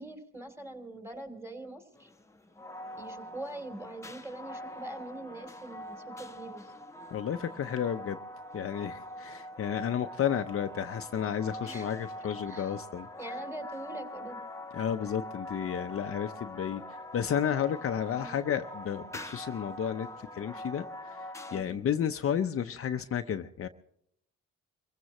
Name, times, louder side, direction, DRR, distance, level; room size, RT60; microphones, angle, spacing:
voice 1, 0.0-2.1 3.0-6.7 11.6-11.9 12.5-12.7 13.2-14.4 18.2-18.3 21.5-21.8, right 2 dB, 10° right, 5 dB, 3.0 m, -43 dB
sound 1, 1.9-21.6, left 1 dB, 10° left, 1.0 m, -43 dB
voice 2, 7.1-8.2 8.5-13.1 14.7-23.7, left 8 dB, 50° left, 7 dB, 0.7 m, -32 dB
24.5 x 16.0 x 3.0 m, 0.72 s
cardioid pair, 90°, 30 cm